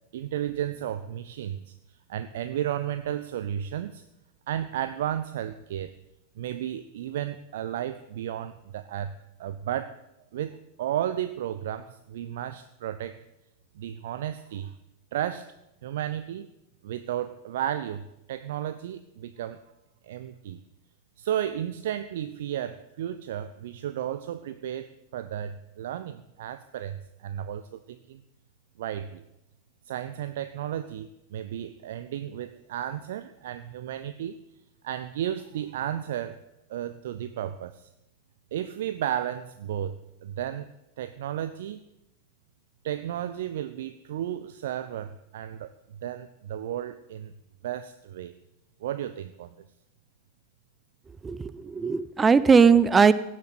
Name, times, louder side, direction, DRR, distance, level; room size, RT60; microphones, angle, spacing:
voice 1, 0.1-1.7 2.1-4.0 4.5-5.9 6.4-10.0 10.3-13.2 13.7-14.7 15.1-15.5 15.8-16.5 16.8-19.6 20.0-20.6 21.2-28.2 28.8-29.2 29.8-34.4 34.8-36.4 36.7-37.9 38.5-40.7 41.0-41.8 42.8-47.3 47.6-48.3 48.8-49.6, right 11 dB, 55° right, 12 dB, 0.7 m, -33 dB
voice 2, 51.2-53.1, right 5 dB, 15° right, 16 dB, 0.7 m, -19 dB
17.0 x 7.6 x 8.4 m, 0.91 s
figure-of-eight pair, 90°, 0 cm